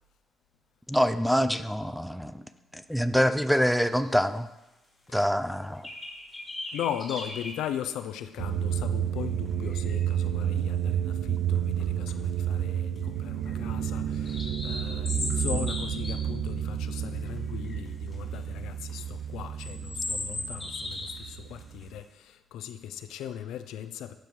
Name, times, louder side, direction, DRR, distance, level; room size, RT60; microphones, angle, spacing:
voice 1, 0.9-2.4 2.7-4.5 5.1-5.9, equal, ahead, 10 dB, 0.5 m, -25 dB
sound 1, 3.5-4.1 4.6-4.7 5.1-5.2 5.8-7.6 8.2-8.3 9.5-10.1 11.5-11.8 12.1-12.2 12.5-13.0 13.4-16.2 17.1-17.4 17.6-18.4 18.9-19.0 19.6-21.3 21.6-21.8, left 2 dB, 15° left, 3.0 m, -37 dB
voice 2, 6.7-24.1, left 10 dB, 90° left, 10 dB, 0.5 m, -38 dB
sound 2, 8.4-22.0, right 10 dB, 85° right, 0.4 m, -31 dB
12.0 x 7.6 x 3.2 m, 0.95 s
cardioid pair, 90°, 0 cm